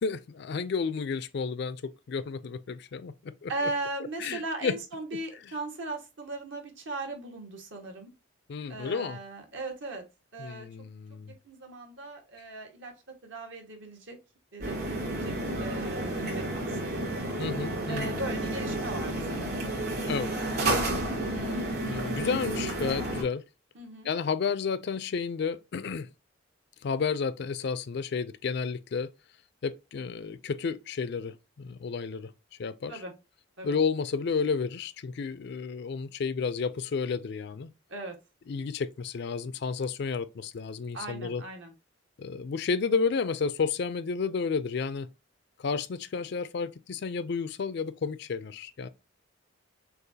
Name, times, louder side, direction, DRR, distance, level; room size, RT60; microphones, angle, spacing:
voice 1, 0.0-3.5 4.2-4.8 8.5-9.2 10.4-11.3 17.4-18.1 20.1-20.3 20.6-20.8 21.9-23.4 24.0-26.1 26.8-29.1 29.6-32.3 32.6-33.0 33.6-37.7 38.5-41.4 42.2-45.1 45.6-48.9, left 5 dB, 60° left, 0.4 m, -31 dB
voice 2, 3.5-8.1 8.7-10.0 10.3-10.7 11.4-12.9 13.2-14.2 14.5-17.1 17.9-19.5 23.7-24.1 32.9-33.1 33.6-33.8 37.9-38.1 40.9-41.7, right 2 dB, 70° right, 1.5 m, -38 dB
sound 1, 14.6-23.2, right 1 dB, 50° right, 2.9 m, -31 dB
6.5 x 2.4 x 2.7 m
head